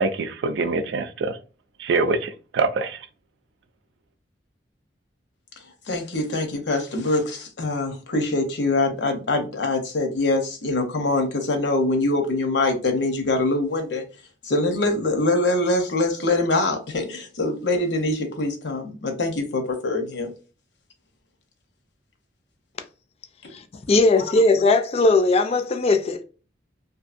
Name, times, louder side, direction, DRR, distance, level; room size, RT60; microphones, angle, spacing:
voice 1, 0.0-1.4 1.8-3.0, right 3 dB, 75° right, 0.4 m, -24 dB
voice 2, 5.9-14.0 14.4-20.3 23.4-23.5 24.2-24.3, left 2 dB, 75° left, 0.7 m, -24 dB
voice 3, 23.5-26.2, left 2 dB, 35° left, 0.3 m, -19 dB
2.7 x 2.6 x 2.5 m
head